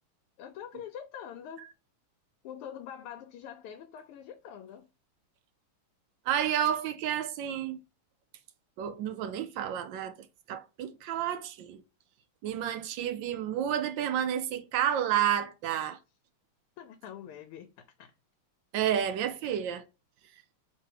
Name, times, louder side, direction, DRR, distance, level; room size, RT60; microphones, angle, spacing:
voice 1, 0.4-1.7 2.4-4.9 16.8-18.1, left 9 dB, 85° left, 1.5 m, -44 dB
voice 2, 6.3-7.8 8.8-10.1 10.5-11.8 12.4-16.0 18.7-19.8, right 10 dB, 75° right, 1.1 m, -30 dB
3.7 x 3.0 x 4.6 m
omnidirectional pair, 2.4 m